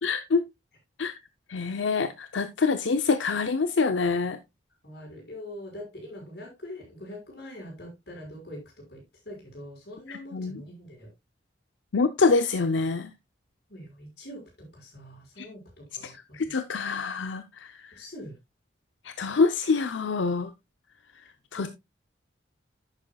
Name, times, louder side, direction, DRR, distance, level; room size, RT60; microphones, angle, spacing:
voice 1, 0.0-0.5 1.0-1.2 1.5-4.4 10.1-10.6 11.9-13.1 15.4-15.5 16.0-18.0 19.0-20.5 21.5-21.7, left 4 dB, 85° left, 0.6 m, -26 dB
voice 2, 4.8-11.1 13.7-16.1 18.0-18.4 21.6-21.7, left 1 dB, 60° left, 5.7 m, -43 dB
10.5 x 8.8 x 2.3 m
head